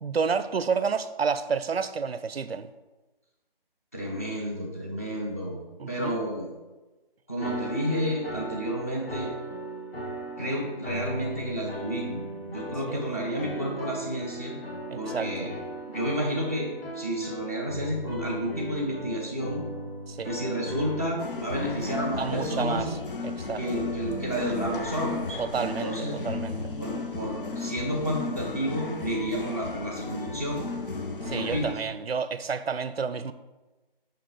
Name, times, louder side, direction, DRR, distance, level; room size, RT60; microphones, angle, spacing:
voice 1, 0.0-2.7 5.8-6.2 12.9-13.0 14.9-15.5 20.1-20.3 22.2-22.9 23.2-23.8 25.4-26.7 31.3-33.3, right 5 dB, 90° right, 13 dB, 0.6 m, -30 dB
voice 2, 3.9-5.6 5.9-6.5 7.3-9.3 10.4-14.6 14.9-15.6 15.8-16.7 16.9-19.6 20.2-22.9 23.6-26.2 26.8-30.6 31.2-31.7, equal, 15° left, -4 dB, 0.7 m, -31 dB
sound 1, 7.4-21.1, equal, 80° left, 1.4 m, -38 dB
sound 2, 21.2-31.7, left 3 dB, 60° left, 0.8 m, -34 dB
6.6 x 5.7 x 3.8 m, 1.1 s
figure-of-eight pair, 170°, 30 cm